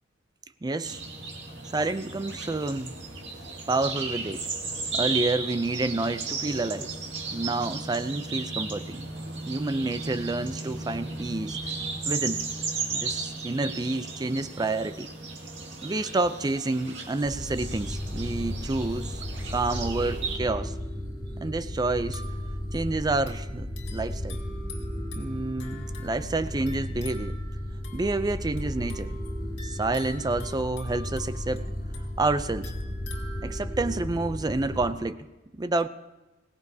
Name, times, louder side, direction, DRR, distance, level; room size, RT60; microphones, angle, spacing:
voice 1, 0.6-1.0 1.7-2.9 3.7-4.5 4.9-6.9 7.3-9.0 9.5-11.6 12.1-12.4 12.9-15.1 15.8-19.2 19.5-20.7 21.4-22.2 22.7-24.4 25.1-27.4 27.9-29.2 29.6-31.7 32.2-32.7 33.4-35.3 35.5-35.9, right 2 dB, 20° right, 12 dB, 0.4 m, -29 dB
sound 1, 0.8-20.4, right 4 dB, 65° right, 2.1 m, -35 dB
sound 2, 17.2-35.0, left 1 dB, 20° left, 2.3 m, -34 dB
sound 3, 22.0-33.9, left 3 dB, 65° left, 2.0 m, -48 dB
21.5 x 17.5 x 2.8 m, 1.1 s
head